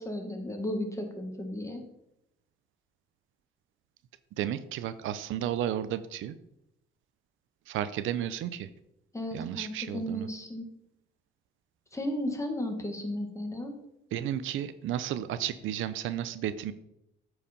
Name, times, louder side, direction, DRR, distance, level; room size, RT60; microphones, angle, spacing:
voice 1, 0.0-1.8 9.1-10.7 11.9-13.7, left 1 dB, 15° left, 3 dB, 1.9 m, -34 dB
voice 2, 4.4-6.3 7.7-8.7 9.3-10.3 14.1-16.7, right 11 dB, 85° right, 14 dB, 0.6 m, -33 dB
8.6 x 4.9 x 5.3 m, 0.82 s
cardioid pair, 90°, 20 cm